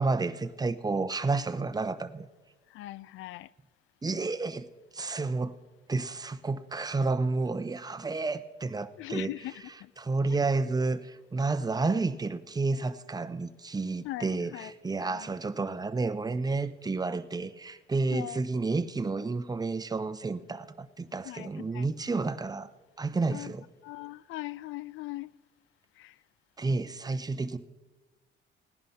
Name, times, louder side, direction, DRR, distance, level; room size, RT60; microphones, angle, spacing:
voice 1, 0.0-2.3 4.0-4.7 4.9-5.5 5.9-9.3 10.0-22.7 23.0-23.6 26.6-27.6, right 3 dB, 20° right, 0.8 m, -30 dB
voice 2, 2.7-3.5 9.0-9.9 10.3-10.4 14.0-14.7 15.0-15.3 18.1-18.4 21.2-21.9 23.3-23.5 23.8-25.3 26.0-26.2, left 17 dB, 85° left, 0.4 m, -40 dB
17.5 x 10.5 x 5.7 m
cardioid pair, 90°, 20 cm